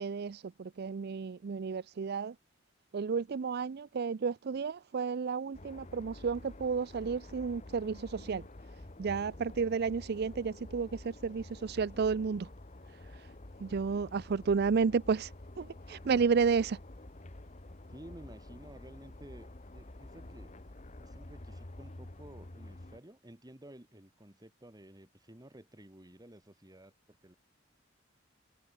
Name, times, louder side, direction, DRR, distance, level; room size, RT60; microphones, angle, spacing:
voice 1, 0.0-2.4 2.9-8.5 9.0-12.5 12.9-13.3 13.6-16.8, right 5 dB, 55° right, 0.4 m, -32 dB
sound 1, 5.5-23.0, left 1 dB, 35° left, 1.3 m, -49 dB
voice 2, 17.9-19.5 19.7-20.5 21.0-27.3, right 1 dB, 20° right, 2.5 m, -53 dB
head